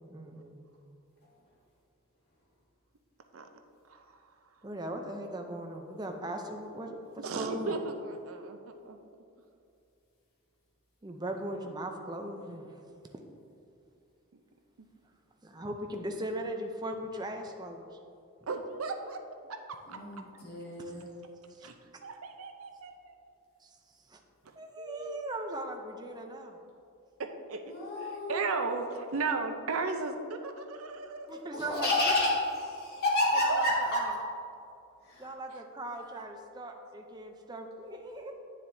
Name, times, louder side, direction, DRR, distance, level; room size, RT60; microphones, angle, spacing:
voice 1, 0.1-0.6 4.6-7.7 11.0-12.7 15.4-17.9 20.8-20.9 21.5-21.7 23.6-23.8 24.1-24.2 24.6-26.6 31.3-32.1 33.4-34.1 35.2-38.3, right 1 dB, 20° right, 4 dB, 0.5 m, -39 dB
voice 2, 3.9-4.2 7.2-8.6 8.8-9.0 18.5-19.2 19.5-20.0 21.6-21.7 22.0-23.1 24.8-25.2 27.2-27.6 28.0-31.5 33.5-33.6 35.9-36.2, right 4 dB, 70° right, 6 dB, 0.6 m, -35 dB
voice 3, 19.9-21.1 27.7-28.6 31.5-34.1 35.0-35.3, left 1 dB, 45° left, -6 dB, 1.9 m, -30 dB
9.5 x 7.2 x 2.7 m, 2.5 s
head